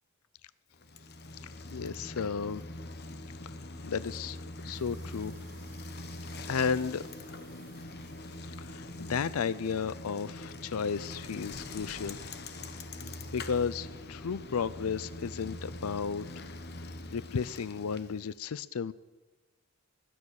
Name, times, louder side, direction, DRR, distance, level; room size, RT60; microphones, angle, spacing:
Bicycle, 0.7-18.3, left 2 dB, 50° left, 1.1 m, -43 dB
voice 1, 1.7-2.6 3.8-4.4 4.6-5.3 6.5-7.0 8.6-12.2 13.3-16.4 17.1-18.9, left 6 dB, 85° left, 18 dB, 0.5 m, -33 dB
sound 1, 4.7-9.8, right 5 dB, 45° right, 3.8 m, -62 dB
20.5 x 9.7 x 6.5 m, 1.2 s
head